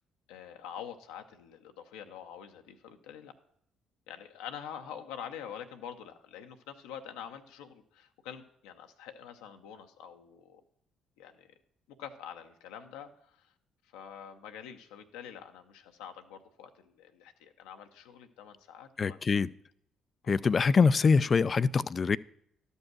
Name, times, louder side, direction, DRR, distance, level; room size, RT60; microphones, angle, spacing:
voice 1, 0.3-3.3 4.1-10.6 11.2-11.5 11.9-13.5 13.8-19.3 20.2-20.4, left 8 dB, 80° left, 0.6 m, -46 dB
voice 2, 19.0-19.5 20.3-22.2, left 5 dB, 40° left, 0.3 m, -24 dB
12.0 x 5.4 x 6.1 m
hypercardioid pair, 50°, 0 cm